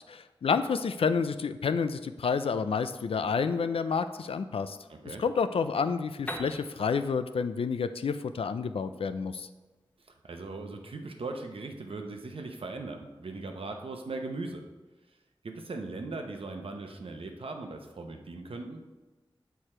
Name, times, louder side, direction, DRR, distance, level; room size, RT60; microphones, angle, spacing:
voice 1, 0.1-4.8 5.2-9.5, left 5 dB, 90° left, 11 dB, 0.4 m, -29 dB
voice 2, 4.9-5.2 10.2-14.6 15.4-18.8, right 3 dB, 80° right, 4 dB, 0.8 m, -39 dB
Piano, 6.3-9.9, equal, 15° left, 0.9 m, -44 dB
6.7 x 4.7 x 4.3 m, 1.1 s
wide cardioid pair, 55°, 9 cm